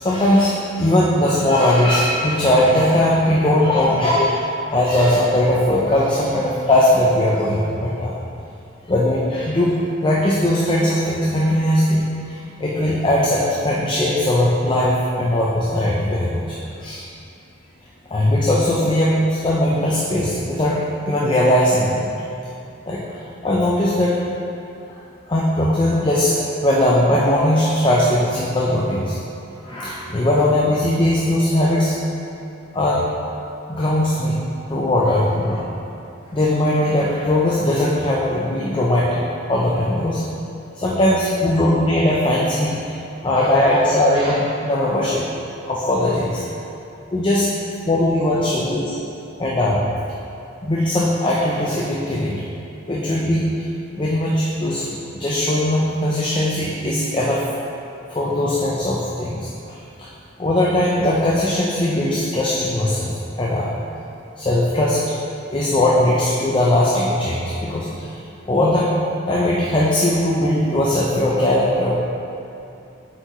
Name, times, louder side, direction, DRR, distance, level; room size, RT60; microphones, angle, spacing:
voice 1, 0.0-8.1 8.9-17.0 18.1-22.1 22.9-24.2 24.9-25.0 25.3-29.2 29.6-32.0 32.7-33.1 33.7-34.4 34.7-35.7 36.3-39.2 39.5-40.2 40.8-42.9 43.2-45.2 45.7-46.4 47.1-47.5 47.9-49.0 49.4-49.8 50.6-52.4 52.9-53.7 54.0-57.5 58.1-60.1 60.4-63.1 63.4-63.7 64.4-65.1 65.5-68.2 68.4-72.0, left 1 dB, 25° left, -5 dB, 0.5 m, -19 dB
7.6 x 4.5 x 3.0 m, 2.7 s
head